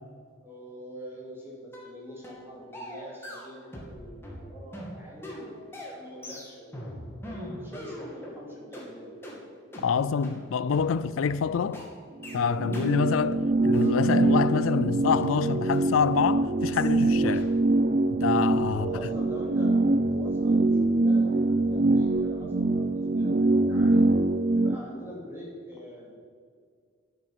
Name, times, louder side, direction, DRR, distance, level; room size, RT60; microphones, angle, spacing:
voice 1, 0.4-6.9 7.2-9.1 18.7-19.7 20.1-24.0 24.5-26.2, left 1 dB, 10° right, 3.1 m, -44 dB
sound 1, 1.7-1.9 2.2-2.4 2.7-4.0 4.2-8.4 8.7-8.9 9.2-9.4 9.7-9.9 10.2-10.4 10.7-10.9 11.2-11.4 11.7-11.9 12.2-12.4 12.7-12.9 13.2-13.4 13.7-14.9 15.2-15.3 15.7-15.8 16.2-16.4 16.7-16.9 17.2-17.4, equal, 10° left, 2.4 m, -41 dB
voice 2, 9.8-11.8 12.3-17.5 18.2-18.9, left 6 dB, 90° left, 0.4 m, -26 dB
sound 2, 12.2-24.8, right 2 dB, 40° right, 0.4 m, -24 dB
10.0 x 8.9 x 7.9 m
head